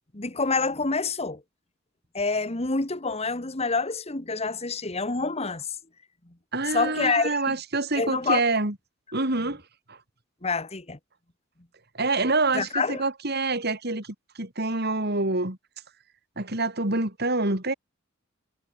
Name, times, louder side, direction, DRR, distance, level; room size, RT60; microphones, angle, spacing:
voice 1, 0.1-1.4 2.1-5.8 6.3-6.4 6.7-7.6 8.0-8.4 10.4-11.0 12.5-13.0, left 4 dB, 30° left, 1.8 m, -27 dB
voice 2, 6.5-8.7 9.1-9.6 9.9-10.0 11.9-15.6 16.4-17.7, right 3 dB, 55° right, 4.1 m, -26 dB
head